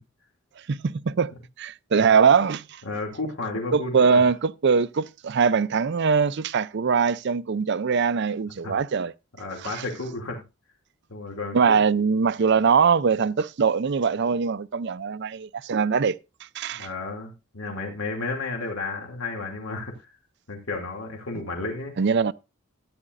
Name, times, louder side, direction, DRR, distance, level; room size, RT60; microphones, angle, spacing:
voice 1, 0.7-2.8 3.7-9.1 9.6-9.8 11.5-16.2 16.5-16.9 22.0-22.3, right 5 dB, 55° right, 0.5 m, -22 dB
voice 2, 2.8-4.2 8.6-8.8 9.4-10.4 11.1-11.8 16.7-20.1 20.5-21.9, left 3 dB, 80° left, 2.5 m, -32 dB
14.0 x 10.0 x 2.5 m
head